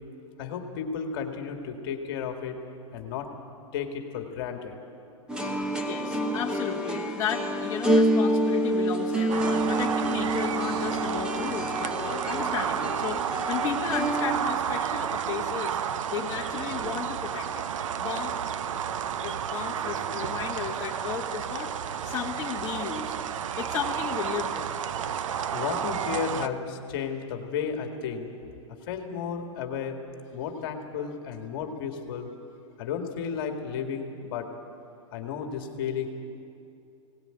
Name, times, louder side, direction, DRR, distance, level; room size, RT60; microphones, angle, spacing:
voice 1, 0.4-2.6 2.9-3.3 3.7-4.8 25.5-28.3 28.9-30.0 30.3-32.3 32.8-34.5 35.1-36.1, left 7 dB, 45° left, 4 dB, 2.1 m, -33 dB
sound 1, 5.3-14.4, equal, 5° right, 1.1 m, -27 dB
voice 2, 5.8-17.7 18.0-18.4 18.7-21.7 22.0-23.2 23.6-24.7, left 7 dB, 20° left, -4 dB, 1.7 m, -34 dB
sound 2, 9.3-26.5, right 8 dB, 70° right, 0.8 m, -31 dB
20.0 x 18.0 x 9.1 m, 2.6 s
hypercardioid pair, 160°, 17 cm